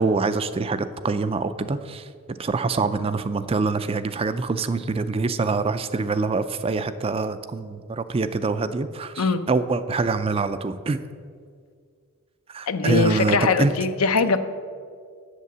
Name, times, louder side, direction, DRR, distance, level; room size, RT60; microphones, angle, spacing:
voice 1, 0.0-11.0 12.5-13.7, right 3 dB, 25° right, 12 dB, 0.4 m, -25 dB
voice 2, 12.7-14.4, left 4 dB, 75° left, 10 dB, 0.6 m, -21 dB
8.2 x 7.4 x 7.3 m, 2.1 s
head